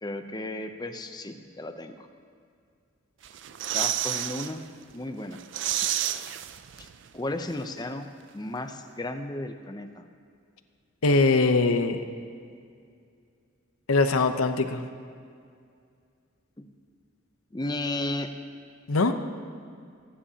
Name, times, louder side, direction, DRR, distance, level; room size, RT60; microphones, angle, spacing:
voice 1, 0.0-2.1 3.7-4.6 4.9-5.4 6.8-8.1 8.3-10.0 16.6-16.7 17.5-18.3, left 1 dB, 20° left, 7 dB, 0.6 m, -34 dB
sound 1, 3.2-4.5 4.9-5.0 5.3-7.1 7.3-7.4, right 12 dB, 55° right, 0.4 m, -30 dB
voice 2, 11.0-12.0 13.9-14.8 18.9-19.1, left 3 dB, 85° left, 8 dB, 0.8 m, -22 dB
24.5 x 10.0 x 2.9 m, 2.3 s
head